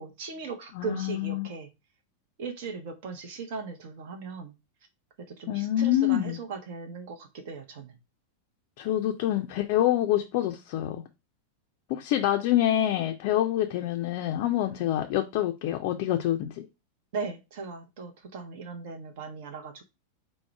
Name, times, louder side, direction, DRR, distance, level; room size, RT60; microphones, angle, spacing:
voice 1, 0.0-1.7 2.4-4.5 5.3-7.9 17.1-19.8, right 4 dB, 50° right, 0.6 m, -38 dB
voice 2, 0.7-1.5 5.5-6.4 8.8-11.0 11.9-16.7, left 12 dB, 45° left, 0.4 m, -26 dB
4.7 x 2.1 x 4.5 m
figure-of-eight pair, 90°, 0 cm